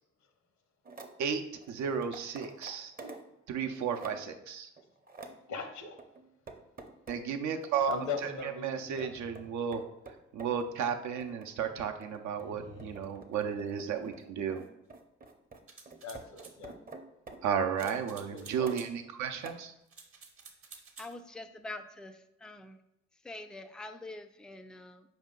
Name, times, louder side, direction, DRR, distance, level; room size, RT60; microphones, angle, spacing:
sound 1, 0.9-1.1 1.6-3.3 3.7-4.4 4.8-5.4 6.0-7.3 7.6-8.5 9.0-18.0 18.6-19.1 19.4-19.5, right 3 dB, 30° right, 0.7 m, -49 dB
voice 1, 1.7-2.9 3.5-4.7 7.1-9.8 10.3-14.6 17.4-19.7, right 7 dB, 70° right, 5 dB, 0.6 m, -33 dB
voice 2, 5.5-6.0 7.9-9.1 16.0-16.7 18.3-18.7, left 5 dB, 65° left, 6 dB, 0.8 m, -39 dB
sound 2, 8.6-10.4 12.2-13.2, left 2 dB, 85° left, 1.2 m, -53 dB
sound 3, 15.7-16.6 17.8-18.9 19.9-21.1, right 5 dB, 45° right, 1.0 m, -52 dB
voice 3, 21.0-22.8 23.2-25.1, left 2 dB, 5° left, 8 dB, 0.3 m, -45 dB
4.8 x 2.7 x 3.7 m, 0.84 s
supercardioid pair, 55°, 30 cm